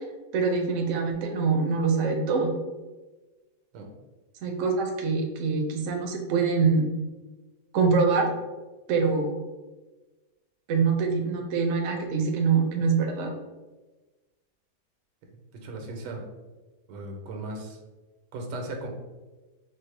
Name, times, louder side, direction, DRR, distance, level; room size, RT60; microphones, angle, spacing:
voice 1, 0.3-2.5 4.4-6.9 7.7-8.3 8.9-9.3 10.7-13.3, right 4 dB, 65° right, 2 dB, 0.8 m, -24 dB
voice 2, 15.6-16.3 16.9-17.8 18.3-18.9, right 2 dB, 85° right, 2 dB, 1.3 m, -36 dB
4.3 x 2.1 x 3.1 m, 1.2 s
omnidirectional pair, 1.8 m